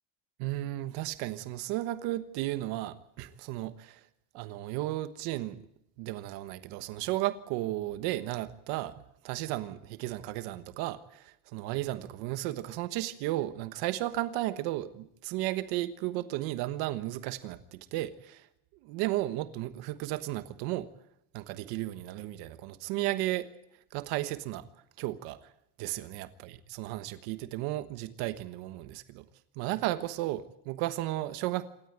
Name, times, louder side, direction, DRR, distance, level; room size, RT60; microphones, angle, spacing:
voice 1, 0.4-4.0 4.3-5.6 6.0-18.5 18.8-20.9 21.3-23.5 23.9-24.7 25.0-25.5 25.8-29.2 29.5-31.7, right 16 dB, 55° right, 11 dB, 1.3 m, -34 dB
27.0 x 13.0 x 9.2 m, 0.80 s
cardioid pair, 160°, 44 cm